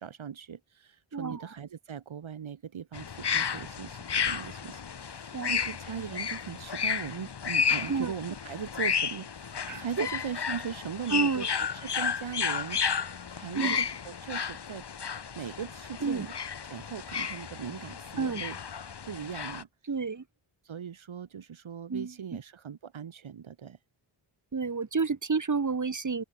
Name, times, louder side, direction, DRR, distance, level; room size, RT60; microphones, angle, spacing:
voice 1, 0.0-11.5 11.7-14.8 15.4-16.3 16.6-18.6 19.0-19.7 20.6-23.8, right 8 dB, 75° right, 3.7 m, -39 dB
voice 2, 1.1-1.5 5.3-5.6 7.9-8.1 9.6-10.1 11.1-11.5 13.5-13.8 16.0-16.3 18.2-18.4 19.9-20.2 21.9-22.1 24.5-26.2, right 4 dB, 40° right, 3.6 m, -30 dB
sound 1, 2.9-19.6, left 6 dB, 55° left, 2.9 m, -33 dB
open air
wide cardioid pair, 130°, 47 cm